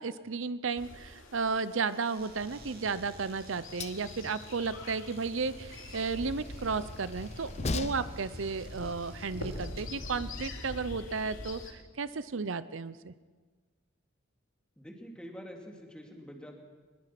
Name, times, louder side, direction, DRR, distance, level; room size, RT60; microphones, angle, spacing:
voice 1, 0.0-13.1, right 4 dB, 75° right, 14 dB, 0.7 m, -34 dB
sound 1, 0.8-11.7, left 2 dB, 80° left, 2.9 m, -45 dB
sound 2, 1.9-10.1, right 4 dB, 50° right, 3.2 m, -57 dB
Train, 2.4-10.1, left 3 dB, 35° left, 0.8 m, -42 dB
voice 2, 14.8-16.6, equal, 5° left, 1 dB, 2.9 m, -46 dB
24.0 x 21.5 x 6.0 m, 1.4 s
head